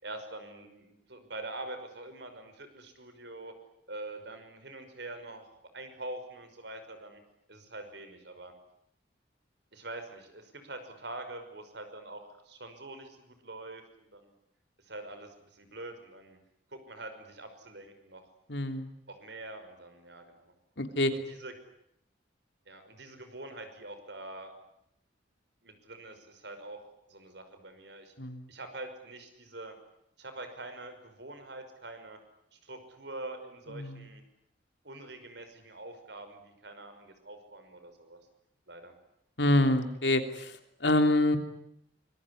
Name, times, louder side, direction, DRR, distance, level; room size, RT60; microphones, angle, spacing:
voice 1, 0.0-3.5 3.9-5.4 5.7-7.2 7.5-8.5 9.7-14.3 14.8-16.4 16.7-18.2 19.1-20.5 21.3-21.5 22.7-24.5 25.6-28.1 28.5-29.8 30.2-32.2 32.5-34.2 34.8-38.2 38.7-38.9, right 2 dB, 65° right, 8 dB, 5.8 m, -45 dB
voice 2, 18.5-18.9 20.8-21.1 28.2-28.5 33.7-34.0 39.4-41.4, left 1 dB, 65° left, 7 dB, 3.2 m, -26 dB
25.0 x 23.0 x 9.9 m, 0.77 s
head